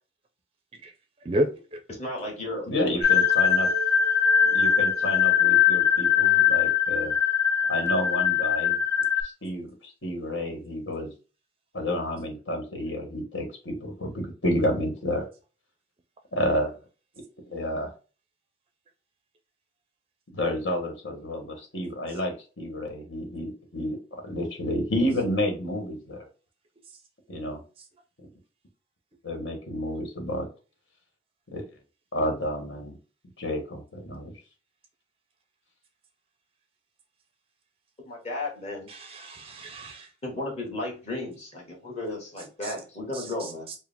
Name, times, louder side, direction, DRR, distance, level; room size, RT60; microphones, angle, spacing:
voice 1, 1.2-1.8 38.9-40.1 42.6-42.7 43.1-43.8, equal, 30° right, 0.4 m, -31 dB
voice 2, 1.9-2.7 38.0-38.9 40.2-43.7, left 2 dB, 35° left, 1.5 m, -34 dB
voice 3, 2.6-3.7 4.5-7.1 7.7-8.8 9.2-11.1 11.7-15.3 16.3-16.7 17.5-17.9 20.3-24.0 24.2-26.3 27.3-27.6 29.2-30.5 31.5-31.6 32.1-33.0 33.4-34.3, left 1 dB, 80° left, 1.3 m, -30 dB
sound 1, 3.0-9.2, left 8 dB, 60° left, 0.9 m, -21 dB
4.7 x 2.0 x 3.5 m
head